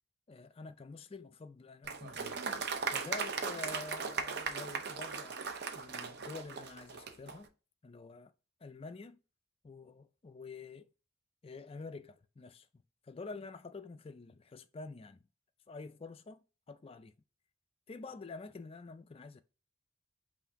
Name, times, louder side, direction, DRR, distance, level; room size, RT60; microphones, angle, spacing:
voice 1, 0.3-2.4 2.9-5.4 5.7-7.5 7.8-8.3 8.6-9.2 9.6-10.9 11.4-15.3 15.7-17.1 17.9-19.4, left 3 dB, 30° left, 0.3 m, -48 dB
Applause, 1.8-7.4, right 5 dB, 50° right, 0.5 m, -38 dB
5.7 x 2.6 x 3.6 m
head